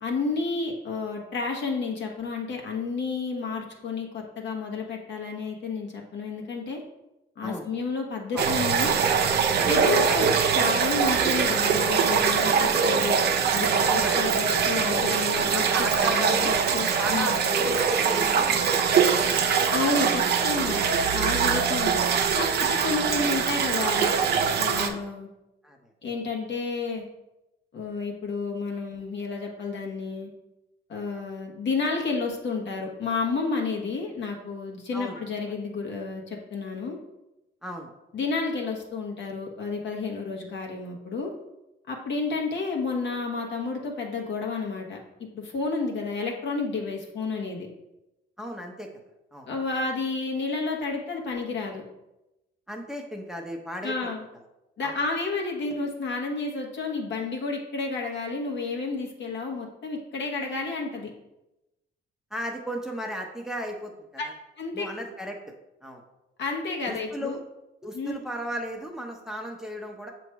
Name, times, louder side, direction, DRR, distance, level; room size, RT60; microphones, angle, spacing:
voice 1, 0.0-6.8 7.4-8.9 9.6-10.3 10.5-13.2 13.5-17.3 19.7-20.8 21.1-24.1 24.5-25.3 26.0-27.0 27.7-30.3 30.9-37.0 38.1-41.3 41.9-45.0 45.3-47.7 49.5-51.8 53.8-54.2 54.8-61.1 64.2-64.3 64.6-64.9 66.4-67.4 67.9-68.1, left 4 dB, 65° left, 0 dB, 1.3 m, -31 dB
sound 1, 8.4-24.9, right 6 dB, 55° right, 0.6 m, -23 dB
voice 2, 9.6-10.2 13.9-14.2 14.9-15.1 15.5-16.6 17.0-19.1 21.4-21.6 24.7-25.0 25.6-25.8 34.9-35.2 37.6-37.9 48.4-48.9 49.3-49.5 52.7-54.0 54.8-55.0 62.3-63.9 64.2-64.3 64.7-65.4 65.8-66.0 66.9-67.4 67.8-70.1, equal, ahead, 1 dB, 0.8 m, -35 dB
6.5 x 3.1 x 4.7 m, 0.95 s
cardioid pair, 90°, 20 cm